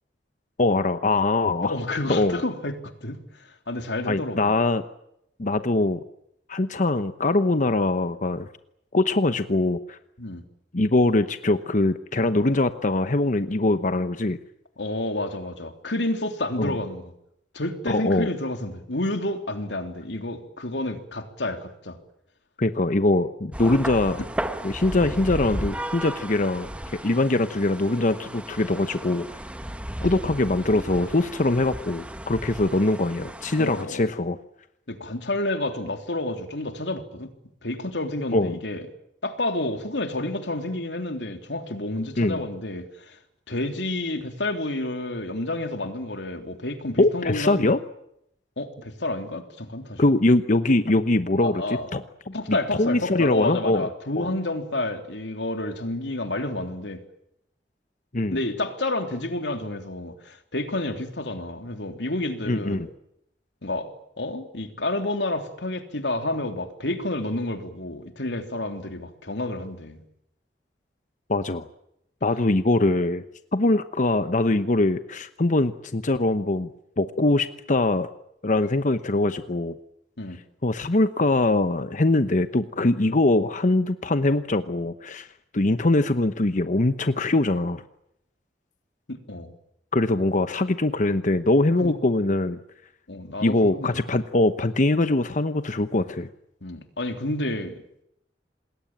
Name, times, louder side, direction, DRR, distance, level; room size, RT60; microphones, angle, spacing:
voice 1, 0.6-1.7 2.1-2.4 4.1-4.8 5.4-6.0 6.5-8.5 8.9-10.0 10.7-14.4 16.6-16.8 17.9-18.3 22.6-24.2 24.6-29.2 30.0-34.4 38.3-38.6 42.2-42.4 47.0-47.8 50.0-53.9 54.2-54.3 58.1-58.4 62.5-62.9 71.3-71.7 72.2-73.2 73.5-76.7 77.0-78.1 78.4-79.8 80.6-85.3 85.5-87.8 89.9-92.6 93.4-96.3, left 2 dB, 45° left, 10 dB, 1.0 m, -22 dB
voice 2, 1.6-4.5 10.2-10.4 14.8-17.1 17.5-22.0 33.6-34.1 34.9-37.3 37.6-38.9 39.2-43.2 43.5-47.7 48.6-50.0 51.4-51.9 52.3-57.0 58.3-62.9 63.6-63.9 64.2-70.0 80.2-80.4 89.1-89.5 91.8-91.9 93.1-94.0 96.6-97.8, left 2 dB, 90° left, 6 dB, 3.2 m, -30 dB
sound 1, 23.5-33.8, right 1 dB, 5° right, 1.5 m, -35 dB
27.5 x 20.5 x 8.9 m, 0.78 s
head